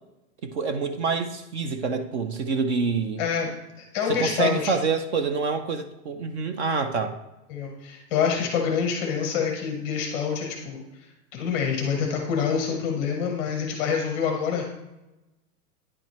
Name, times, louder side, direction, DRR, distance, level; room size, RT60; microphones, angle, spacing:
voice 1, 0.4-3.2 4.1-7.2, right 5 dB, 45° right, 9 dB, 0.5 m, -27 dB
voice 2, 3.2-4.7 7.5-10.8 11.3-14.6, left 6 dB, 15° left, 1 dB, 0.6 m, -26 dB
9.7 x 4.3 x 3.0 m, 0.98 s
supercardioid pair, 165°, 47 cm